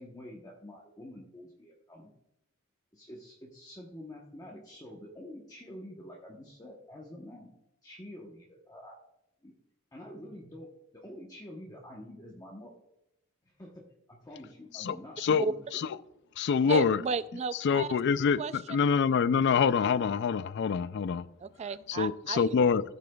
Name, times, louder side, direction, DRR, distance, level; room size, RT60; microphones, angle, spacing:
voice 1, 0.0-2.1 2.9-7.5 7.8-9.0 9.4-9.5 9.9-12.8 13.4-15.9, left 1 dB, 15° left, 1.0 m, -47 dB
voice 2, 14.7-15.5 15.7-15.9 16.4-17.0 17.6-21.3 21.9-22.8, left 6 dB, 55° left, 0.3 m, -26 dB
voice 3, 16.7-17.9 18.4-18.5 21.4-22.5, right 5 dB, 30° right, 0.3 m, -33 dB
14.5 x 8.3 x 2.3 m
head